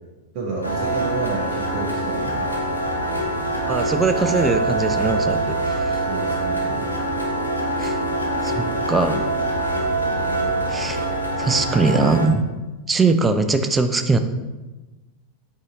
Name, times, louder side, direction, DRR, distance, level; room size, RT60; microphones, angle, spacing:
voice 1, 0.3-2.6 6.0-6.9, right 3 dB, 40° right, -4 dB, 0.7 m, -30 dB
sound 1, 0.6-12.3, right 2 dB, 85° left, 0.6 m, -24 dB
voice 2, 3.7-6.0 7.8-8.0 8.4-9.3 10.7-11.0 11.4-12.4 12.9-14.2, right 3 dB, 15° right, 8 dB, 0.3 m, -21 dB
4.8 x 2.7 x 3.8 m, 1.1 s
figure-of-eight pair, 90°, 0 cm